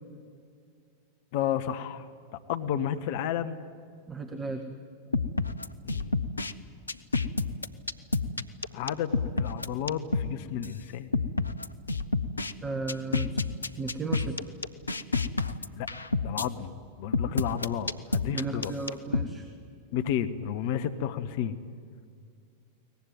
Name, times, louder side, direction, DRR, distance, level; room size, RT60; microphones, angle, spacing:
voice 1, 1.3-2.1 2.5-3.6 5.8-6.2 8.7-11.1 15.8-15.9 16.2-16.7 17.0-18.7 19.9-21.6, left 9 dB, 50° left, 12 dB, 1.1 m, -31 dB
voice 2, 4.1-4.6 12.6-13.3 13.8-14.4 18.3-19.5, right 3 dB, 15° right, 7 dB, 1.5 m, -34 dB
sound 1, 5.1-6.5 6.9-10.3 10.6-10.7 11.1-12.5 12.9-16.5 17.1-19.3, left 3 dB, 80° left, 0.7 m, -29 dB
23.0 x 19.0 x 9.7 m, 2.2 s
figure-of-eight pair, 90°, 0 cm